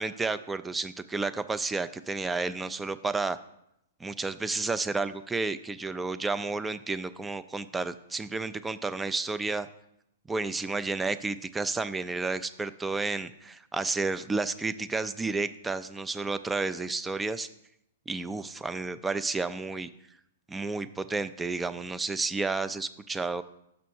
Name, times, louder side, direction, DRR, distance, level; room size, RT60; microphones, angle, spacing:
voice 1, 0.0-3.4 4.0-9.7 10.3-17.5 18.1-19.9 20.5-23.4, right 3 dB, 10° right, 13 dB, 0.4 m, -31 dB
6.4 x 6.0 x 4.3 m, 0.79 s
hypercardioid pair, 115°, 0 cm